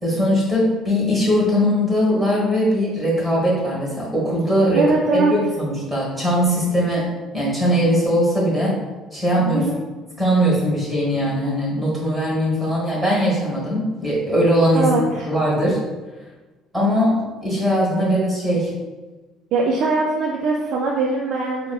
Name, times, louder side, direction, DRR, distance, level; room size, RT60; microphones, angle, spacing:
voice 1, 0.0-8.8 9.1-9.7 10.2-14.9 15.3-15.8 16.7-18.8, equal, 15° right, -5 dB, 1.2 m, -20 dB
voice 2, 4.7-5.3 9.5-9.8 14.7-15.3 19.5-21.7, right 3 dB, 55° right, -1 dB, 0.3 m, -21 dB
4.5 x 2.9 x 2.3 m, 1.2 s
cardioid pair, 165°, 0 cm